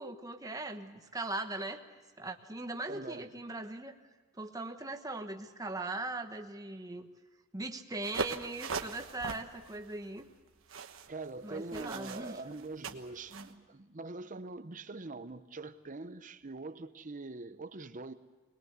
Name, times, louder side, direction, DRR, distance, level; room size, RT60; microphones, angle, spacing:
voice 1, 0.0-1.9 2.2-3.9 4.3-7.1 7.5-10.3 11.4-12.4, right 2 dB, 15° right, 1.3 m, -40 dB
voice 2, 2.9-3.3 11.1-18.1, right 3 dB, 40° right, 0.8 m, -43 dB
sound 1, 8.0-13.5, right 4 dB, 70° right, 1.3 m, -41 dB
22.0 x 21.0 x 8.1 m
head